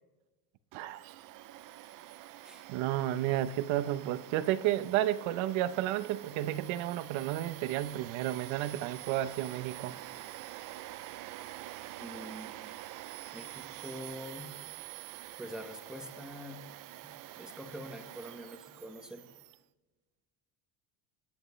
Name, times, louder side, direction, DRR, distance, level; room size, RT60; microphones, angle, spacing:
Domestic sounds home sounds, 0.7-19.6, right 14 dB, 45° right, 0.4 m, -47 dB
voice 1, 0.7-1.1 2.7-9.9, right 13 dB, 75° right, 0.9 m, -32 dB
voice 2, 12.0-12.6 13.3-14.5 15.4-16.6 17.4-19.3, equal, ahead, 1.2 m, -45 dB
27.5 x 10.5 x 3.2 m
cardioid pair, 155°, 48 cm